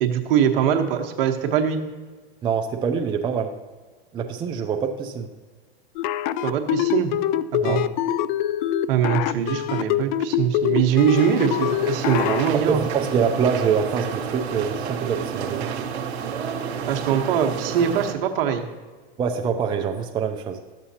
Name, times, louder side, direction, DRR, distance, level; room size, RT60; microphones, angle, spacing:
voice 1, 0.0-1.8 6.4-7.1 7.7-7.8 8.9-12.8 16.9-18.6, right 9 dB, 60° right, 4 dB, 1.1 m, -22 dB
voice 2, 2.4-3.5 4.1-5.3 7.6-7.8 12.5-15.7 19.2-20.6, right 6 dB, 15° right, 3 dB, 0.4 m, -25 dB
sound 1, 6.0-12.5, left 12 dB, 50° left, 0.4 m, -24 dB
sound 2, 10.9-18.1, right 7 dB, 80° right, 1.1 m, -30 dB
12.5 x 7.3 x 2.8 m, 1.4 s
hypercardioid pair, 125°, 32 cm